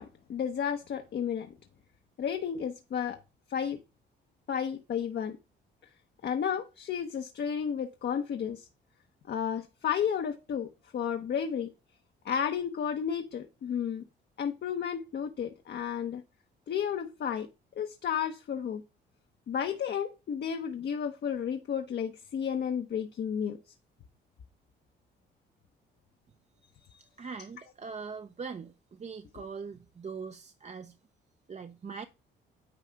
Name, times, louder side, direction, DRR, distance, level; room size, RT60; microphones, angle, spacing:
voice 1, 0.0-1.5 2.2-3.2 3.5-3.8 4.5-5.4 6.2-8.7 9.3-11.7 12.2-14.0 14.4-16.2 16.7-17.5 17.8-18.8 19.5-23.7, left 8 dB, 55° left, 0.9 m, -32 dB
voice 2, 27.2-30.9 31.5-32.0, right 5 dB, 35° right, 0.7 m, -41 dB
9.7 x 4.9 x 3.4 m
cardioid pair, 90°, 20 cm